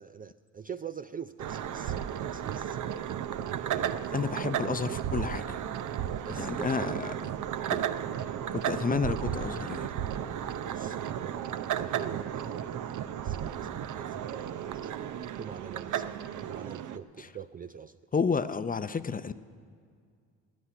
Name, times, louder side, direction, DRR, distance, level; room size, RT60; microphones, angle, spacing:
voice 1, 0.0-2.0 2.2-2.8 3.6-4.3 4.7-5.0 6.2-6.7 7.6-7.9 10.7-14.9 15.4-18.0, right 7 dB, 25° right, 11 dB, 0.4 m, -44 dB
sound 1, 1.4-17.0, right 10 dB, 55° right, 0.7 m, -34 dB
voice 2, 4.1-5.6 6.3-7.1 7.7-7.8 8.5-9.9 17.2-17.3 18.1-19.3, left 5 dB, 25° left, 13 dB, 0.6 m, -31 dB
14.0 x 9.9 x 9.8 m, 2.2 s
supercardioid pair, 65°, 37 cm